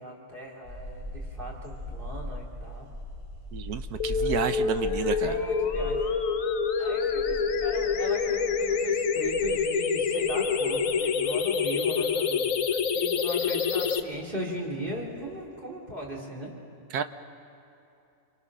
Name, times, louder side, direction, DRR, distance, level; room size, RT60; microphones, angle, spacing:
voice 1, 0.0-2.9 4.1-4.5 5.2-6.0 6.8-12.5 12.9-16.5, equal, 35° right, -3 dB, 3.8 m, -38 dB
sound 1, 0.6-15.4, equal, 50° right, 5.6 m, -41 dB
voice 2, 3.5-5.4 16.9-17.0, right 7 dB, 85° right, 9 dB, 1.5 m, -30 dB
sound 2, 4.0-14.0, left 5 dB, 65° left, 1.3 m, -27 dB
26.5 x 24.5 x 6.3 m, 2.7 s
omnidirectional pair, 1.6 m